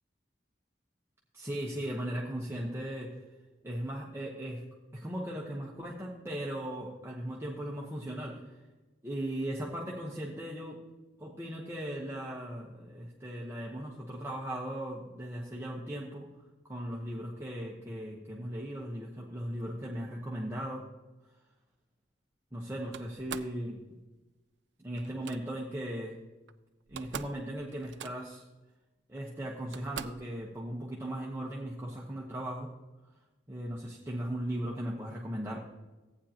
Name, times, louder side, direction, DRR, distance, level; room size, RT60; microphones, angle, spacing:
voice 1, 1.3-3.2 3.6-4.6 4.9-8.6 9.0-10.8 11.2-16.3 16.6-20.8 22.5-24.0 24.8-26.2 26.9-28.4 29.1-32.7 33.5-35.6, right 1 dB, 15° right, -3 dB, 1.0 m, -38 dB
Slam, 22.9-23.6 25.0-25.4 26.5-26.6 26.8-27.4 27.7-28.4 29.2-29.3 29.7-30.3, right 8 dB, 80° right, 0.5 m, -43 dB
15.0 x 8.8 x 2.9 m, 1.2 s
head